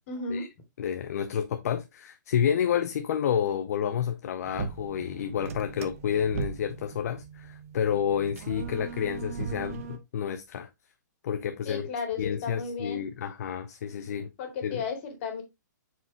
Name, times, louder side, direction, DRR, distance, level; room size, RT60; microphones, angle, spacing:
voice 1, 0.1-0.5 11.6-13.0 14.4-15.4, left 5 dB, 40° left, 2.4 m, -34 dB
voice 2, 0.8-10.7 11.2-11.9 12.2-14.3 14.6-14.8, left 8 dB, 55° left, 0.7 m, -29 dB
sound 1, 4.4-10.0, right 6 dB, 45° right, 1.0 m, -39 dB
7.5 x 4.8 x 2.9 m
hypercardioid pair, 155°, 10 cm